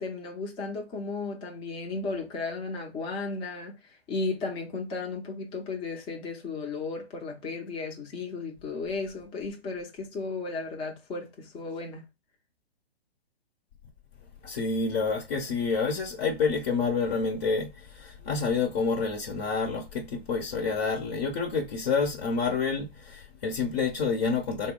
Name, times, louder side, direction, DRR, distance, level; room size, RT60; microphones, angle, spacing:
voice 1, 0.0-12.0, left 3 dB, 15° left, 0.7 m, -34 dB
voice 2, 14.4-24.7, left 4 dB, 45° left, 0.9 m, -28 dB
4.1 x 2.1 x 3.7 m
hypercardioid pair, 130°, 31 cm